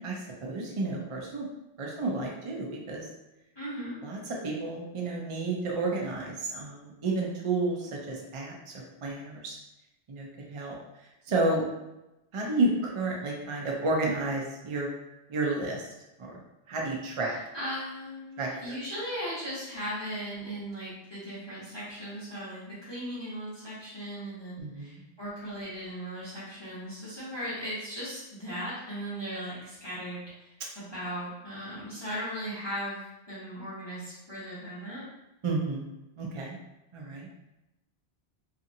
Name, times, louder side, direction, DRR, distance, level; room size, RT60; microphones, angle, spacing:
voice 1, 0.0-1.5 1.8-3.1 4.0-9.6 10.1-10.7 11.3-11.7 12.3-14.9 15.3-15.9 16.2-16.4 16.7-17.4 18.4-18.7 24.6-25.0 35.4-35.8 36.2-36.6 36.9-37.3, right 2 dB, 50° right, -2 dB, 0.4 m, -31 dB
voice 2, 3.5-4.0 17.3-35.0, equal, 25° left, -10 dB, 0.8 m, -38 dB
2.7 x 2.4 x 2.6 m, 0.96 s
omnidirectional pair, 1.1 m